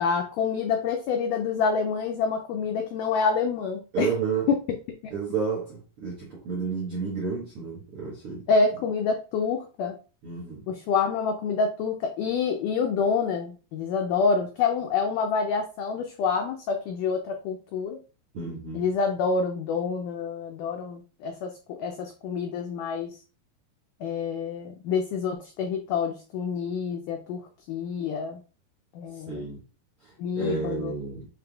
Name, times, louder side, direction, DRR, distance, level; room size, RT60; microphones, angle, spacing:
voice 1, 0.0-4.1 8.5-10.0 10.7-18.0 18.7-23.1 24.0-27.4 27.7-28.4 29.0-29.5 30.2-30.9, left 5 dB, 90° left, 1.8 m, -27 dB
voice 2, 3.9-4.5 5.1-8.4 10.2-10.6 18.3-18.8 29.3-29.6 30.0-31.3, right 5 dB, 75° right, 1.3 m, -31 dB
6.8 x 3.2 x 2.3 m
omnidirectional pair, 4.3 m